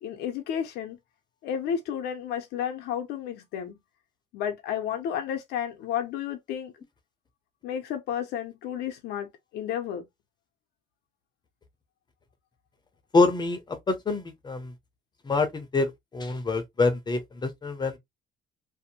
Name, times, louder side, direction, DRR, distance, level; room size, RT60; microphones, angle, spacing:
voice 1, 0.0-1.0 1.4-3.8 4.3-6.7 7.6-10.0, left 9 dB, 80° left, 0.5 m, -32 dB
voice 2, 13.1-14.7 15.2-18.0, left 3 dB, 25° left, 0.6 m, -26 dB
2.6 x 2.0 x 2.8 m
cardioid pair, 110°, 17 cm